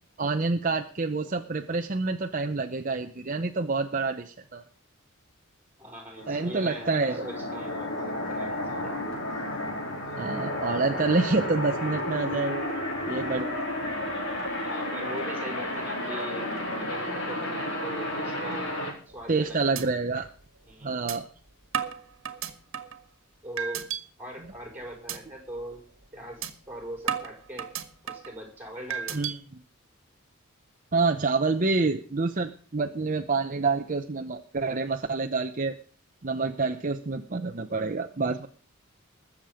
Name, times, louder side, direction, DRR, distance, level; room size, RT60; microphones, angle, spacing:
voice 1, 0.2-4.6 6.3-7.2 10.2-12.8 13.1-13.5 19.3-20.3 20.8-21.3 29.1-29.4 30.9-35.8 36.2-38.5, right 3 dB, 40° right, 6 dB, 0.8 m, -27 dB
voice 2, 5.8-9.0 14.6-16.5 16.8-18.8 19.1-19.9 20.6-21.0 23.4-23.9 24.2-25.9 26.1-27.7 28.0-29.2, equal, 10° right, 2 dB, 4.9 m, -41 dB
sound 1, 6.2-18.9, left 1 dB, 60° left, 5.0 m, -32 dB
sound 2, 19.1-19.4 19.8-19.9 20.3-20.4 21.1-21.2 21.7-23.0 23.6-24.0 24.4-24.7 25.1-25.2 25.6-25.8 26.4-26.5 27.1-28.3 28.9-29.3, right 8 dB, 70° right, 1.7 m, -33 dB
21.0 x 7.4 x 5.0 m, 0.43 s
head